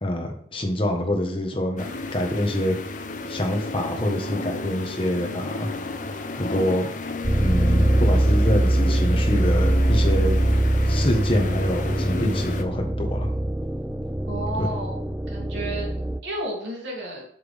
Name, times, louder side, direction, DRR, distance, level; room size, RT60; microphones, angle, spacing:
voice 1, 0.0-2.8 3.3-5.7 6.3-6.9 7.4-10.3 10.9-13.3 14.6-14.7, left 1 dB, 30° left, 3 dB, 1.3 m, -26 dB
sound 1, 1.8-12.6, left 3 dB, 45° left, 0.7 m, -33 dB
sound 2, 7.2-16.2, right 1 dB, 10° right, 0.3 m, -22 dB
voice 2, 14.3-15.0 15.3-15.9 16.2-17.2, right 1 dB, 85° right, -2 dB, 2.9 m, -32 dB
7.7 x 7.4 x 3.5 m, 0.66 s
head